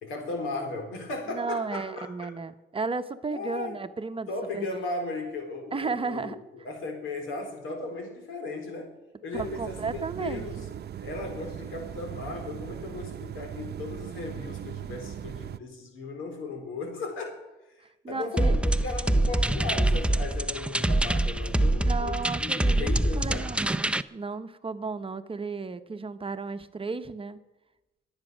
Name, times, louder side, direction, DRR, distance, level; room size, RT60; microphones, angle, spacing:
voice 1, 0.0-2.3 3.3-3.8 4.3-6.3 6.6-8.9 9.2-10.7 11.0-17.5 18.1-23.5, left 3 dB, 85° left, 4 dB, 4.1 m, -36 dB
voice 2, 1.3-4.3 4.5-4.8 5.7-6.4 9.3-10.7 17.8-18.5 21.8-27.4, right 4 dB, 25° right, 10 dB, 0.9 m, -34 dB
sound 1, 9.3-15.6, right 10 dB, 55° right, 0.7 m, -39 dB
sound 2, 18.4-24.0, right 1 dB, 5° right, 0.5 m, -25 dB
23.0 x 9.0 x 6.3 m, 1.0 s
cardioid pair, 90°, 20 cm